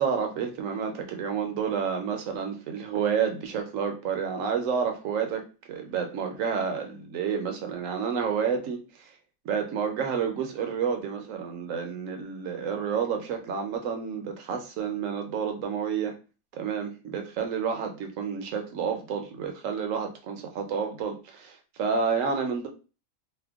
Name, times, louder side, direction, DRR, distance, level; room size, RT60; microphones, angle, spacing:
voice 1, 0.0-5.4 5.7-9.1 9.4-16.1 16.6-22.7, right 6 dB, 70° right, 4 dB, 0.9 m, -30 dB
2.8 x 2.2 x 3.4 m, 0.34 s
omnidirectional pair, 1.5 m